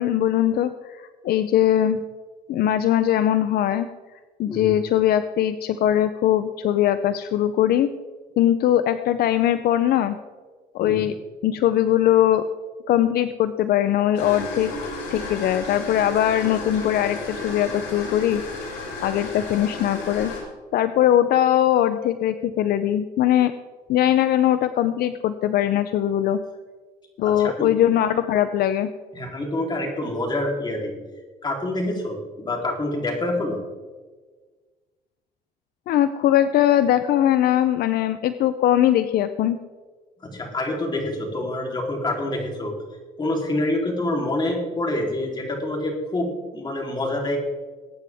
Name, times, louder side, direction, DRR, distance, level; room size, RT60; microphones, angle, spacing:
voice 1, 0.0-2.0 2.5-3.9 4.4-7.9 8.4-10.2 10.7-11.1 11.4-12.4 12.9-14.7 15.1-18.4 19.0-20.3 20.7-23.5 23.9-26.4 27.2-28.9 35.9-39.6, left 11 dB, 65° left, 11 dB, 0.6 m, -20 dB
sound 1, 14.2-20.4, left 3 dB, 90° left, 5.1 m, -33 dB
voice 2, 29.1-30.9 31.4-33.6 40.2-42.8 43.2-47.4, left 1 dB, 25° left, 0 dB, 3.5 m, -26 dB
21.5 x 9.3 x 3.6 m, 1.4 s
cardioid pair, 110°, 17 cm